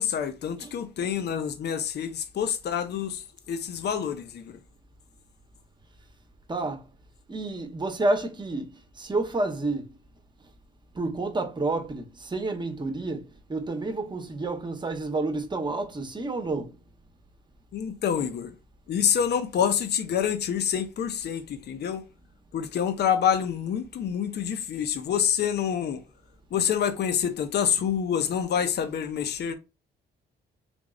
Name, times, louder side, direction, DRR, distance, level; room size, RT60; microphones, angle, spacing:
voice 1, 0.0-4.6 17.7-18.5 18.9-22.0 22.5-26.0 26.5-29.5, left 8 dB, 55° left, 0.7 m, -27 dB
voice 2, 6.5-6.8 7.3-9.9 10.9-16.7, right 2 dB, 20° right, 1.0 m, -29 dB
3.5 x 3.0 x 3.7 m
cardioid pair, 90°, 20 cm